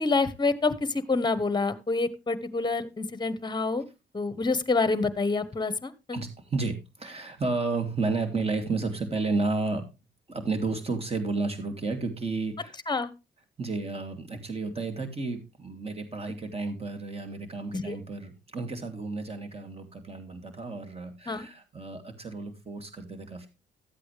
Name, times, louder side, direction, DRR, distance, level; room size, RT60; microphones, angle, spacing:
voice 1, 0.0-3.8 4.1-6.2 12.9-13.1 17.7-18.0 21.3-21.5, left 3 dB, 20° left, 15 dB, 1.2 m, -27 dB
voice 2, 6.1-9.8 10.3-12.8 13.6-23.5, right 3 dB, 30° right, 5 dB, 2.9 m, -32 dB
13.0 x 8.4 x 3.3 m, 0.26 s
cardioid pair, 90°, 20 cm